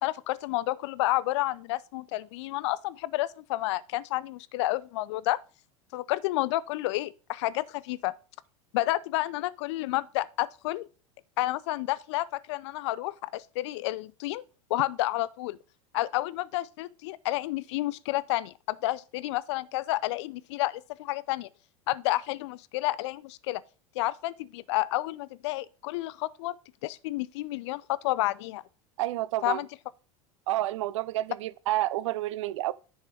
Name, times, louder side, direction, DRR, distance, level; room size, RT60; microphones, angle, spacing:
voice 1, 0.0-5.4 5.9-8.2 8.7-10.9 11.4-14.4 14.7-15.6 15.9-21.5 21.9-23.6 24.0-26.5 26.8-28.6 29.4-29.7, left 17 dB, 55° left, 0.5 m, -30 dB
voice 2, 29.0-29.6 30.5-32.7, right 15 dB, 60° right, 0.5 m, -29 dB
10.0 x 5.5 x 4.6 m
figure-of-eight pair, 80°, 18 cm